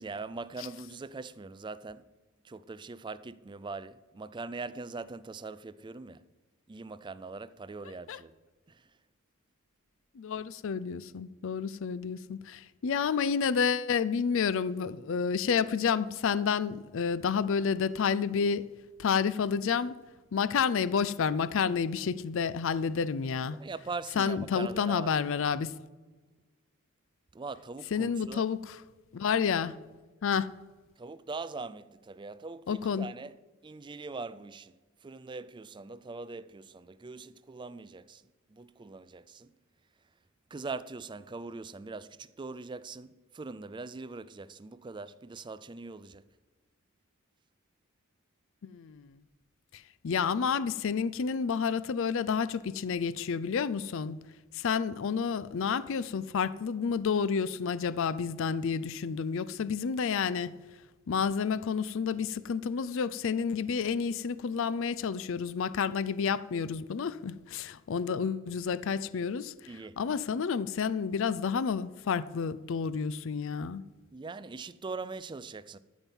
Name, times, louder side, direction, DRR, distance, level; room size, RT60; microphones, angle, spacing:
voice 1, 0.0-2.1 2.4-6.2 6.7-8.3 8.7-8.9 23.5-25.1 27.3-28.4 31.0-33.4 33.6-39.5 40.5-46.2 69.7-70.0 74.1-75.8, right 3 dB, 20° right, 0.4 m, -42 dB
voice 2, 10.2-18.7 19.0-20.0 20.3-23.6 24.2-25.7 27.9-28.8 29.1-29.8 30.2-30.5 32.7-33.1 48.6-49.1 49.7-54.2 54.5-60.6 61.1-69.5 70.0-73.8, left 6 dB, 60° left, 0.4 m, -30 dB
13.5 x 7.3 x 5.4 m
head